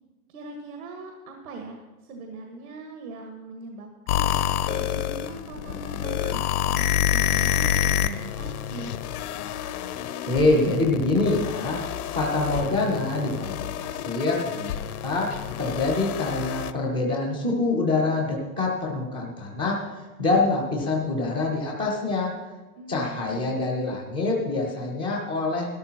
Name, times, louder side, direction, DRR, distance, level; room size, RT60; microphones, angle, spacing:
voice 1, 0.3-8.9 22.8-23.6, right 3 dB, 70° right, 3 dB, 1.9 m, -40 dB
sound 1, 4.1-16.7, left 10 dB, 80° left, 0.8 m, -28 dB
voice 2, 10.3-11.8 12.1-15.3 15.6-19.8 20.2-22.3 22.9-25.7, left 2 dB, 10° right, -2 dB, 0.3 m, -25 dB
12.5 x 12.0 x 4.4 m, 1.2 s
supercardioid pair, 170°, 44 cm